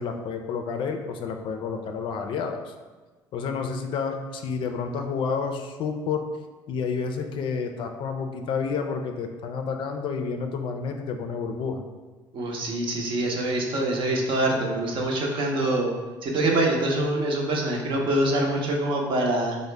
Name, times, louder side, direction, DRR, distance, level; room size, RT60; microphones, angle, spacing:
voice 1, 0.0-2.7 3.3-6.2 6.7-11.8, left 5 dB, 55° left, 5 dB, 0.4 m, -30 dB
voice 2, 12.3-15.9 16.2-19.6, right 1 dB, 55° right, 0 dB, 0.7 m, -25 dB
3.8 x 2.0 x 3.2 m, 1.3 s
hypercardioid pair, 70°, 10 cm